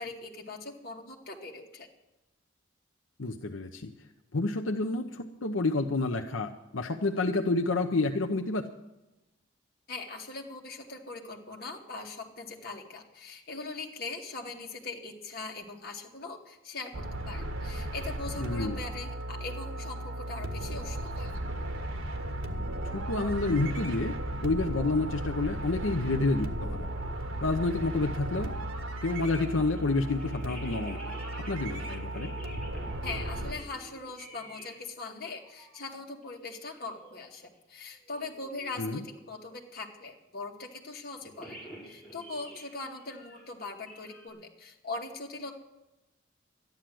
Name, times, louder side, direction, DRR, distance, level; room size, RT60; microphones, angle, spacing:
voice 1, 0.0-1.9 9.9-21.3 33.0-41.6 41.9-45.5, left 3 dB, 50° left, 1 dB, 2.1 m, -41 dB
voice 2, 3.2-3.9 4.3-8.7 18.4-18.8 22.9-24.1 24.4-26.8 27.4-28.5 29.0-31.0 31.4-32.3 38.8-39.0, left 3 dB, 80° left, 3 dB, 0.8 m, -29 dB
sound 1, 16.9-33.5, right 1 dB, 90° right, 1.7 m, -35 dB
sound 2, 29.0-34.8 35.0-35.9 36.2-36.3 36.7-37.1 37.4-37.6 38.0-39.3 41.2-44.3, right 1 dB, ahead, 5.3 m, -49 dB
13.0 x 10.5 x 7.7 m, 0.98 s
head